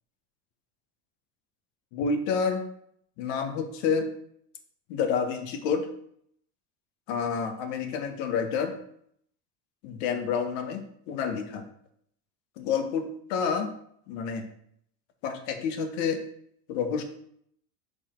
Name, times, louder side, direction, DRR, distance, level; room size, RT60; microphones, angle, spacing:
voice 1, 1.9-2.7 3.2-4.1 4.9-5.9 7.1-8.8 9.8-11.6 12.6-13.7 14.1-14.5 15.2-16.2 16.7-17.0, left 6 dB, 65° left, 7 dB, 1.1 m, -29 dB
6.9 x 4.2 x 4.4 m, 0.68 s
cardioid pair, 170°, 40 cm